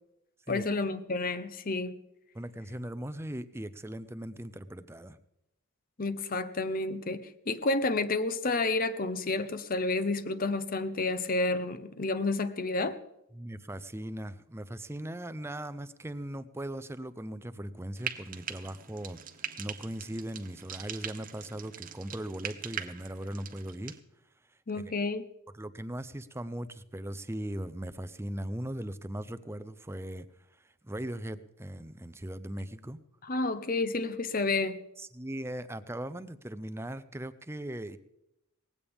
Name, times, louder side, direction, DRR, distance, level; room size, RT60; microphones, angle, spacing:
voice 1, 0.5-2.0 6.0-13.0 24.7-25.2 33.3-34.8, left 3 dB, 40° left, 11 dB, 0.8 m, -30 dB
voice 2, 2.3-5.2 13.3-19.2 19.6-24.0 24.7-24.9 25.5-30.3 30.5-33.0 35.0-38.0, right 1 dB, 10° right, 13 dB, 0.6 m, -39 dB
Frying (food), 18.0-24.0, right 8 dB, 40° right, 0.8 m, -42 dB
19.0 x 15.5 x 3.6 m, 0.88 s
head